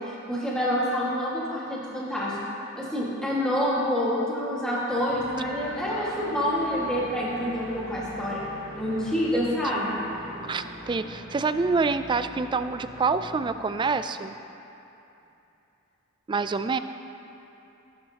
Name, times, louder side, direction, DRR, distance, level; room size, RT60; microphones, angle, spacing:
voice 1, 0.1-2.4 2.8-8.4 8.8-10.0, equal, 5° left, -8 dB, 1.8 m, -27 dB
sound 1, 5.1-13.9, equal, 80° left, 2.7 m, -42 dB
voice 2, 9.3-10.0 10.5-14.3 16.3-16.8, right 4 dB, 20° right, 11 dB, 0.3 m, -27 dB
18.0 x 10.5 x 2.9 m, 2.9 s
head